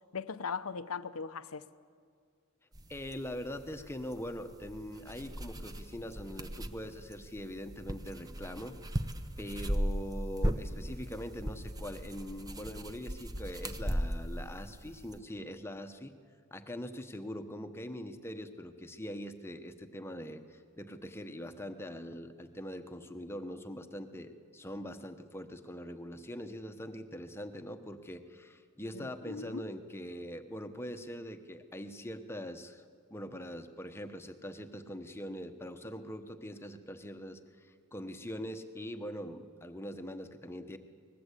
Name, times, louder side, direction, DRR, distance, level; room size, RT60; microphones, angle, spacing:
voice 1, 0.1-1.7 28.9-29.7, left 5 dB, 70° left, 0.8 m, -39 dB
sound 1, 2.7-15.2, equal, 15° right, 0.8 m, -38 dB
voice 2, 2.9-8.9 9.4-16.1 16.5-32.8 33.1-40.8, equal, 10° left, 1.0 m, -42 dB
22.5 x 20.0 x 8.3 m
head